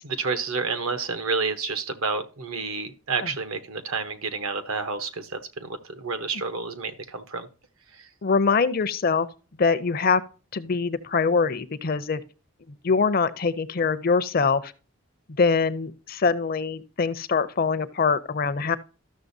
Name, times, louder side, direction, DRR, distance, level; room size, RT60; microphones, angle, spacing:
voice 1, 0.0-7.5 8.0-8.1, right 4 dB, 80° right, 0.9 m, -30 dB
voice 2, 8.2-9.3 9.6-10.2 10.5-12.2 12.8-14.7 15.4-18.8, left 5 dB, 45° left, 0.5 m, -23 dB
13.0 x 6.5 x 2.6 m
head